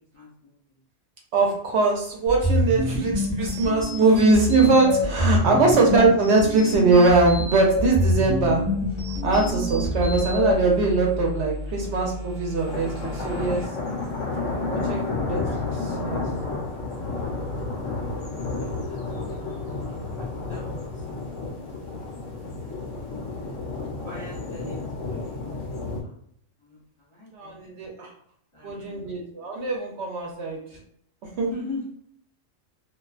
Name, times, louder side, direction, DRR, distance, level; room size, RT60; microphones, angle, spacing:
voice 1, 0.1-0.8 5.5-5.9 18.6-19.4 19.8-22.1 22.9-23.5 24.1-25.5 26.0-26.1 26.6-27.8 28.5-29.1 31.5-31.9, left 2 dB, 30° left, -8 dB, 0.6 m, -42 dB
voice 2, 1.3-8.6 9.2-13.6 14.4-16.3 27.3-28.1 28.6-30.6 31.4-31.5, right 3 dB, 65° right, -1 dB, 0.8 m, -21 dB
sound 1, 2.3-10.5, left 1 dB, 10° right, 0.8 m, -26 dB
sound 2, 7.0-13.7, left 2 dB, 85° right, 0.4 m, -35 dB
sound 3, 12.6-26.0, left 3 dB, 70° left, 1.0 m, -31 dB
2.4 x 2.3 x 2.3 m, 0.66 s
omnidirectional pair, 1.3 m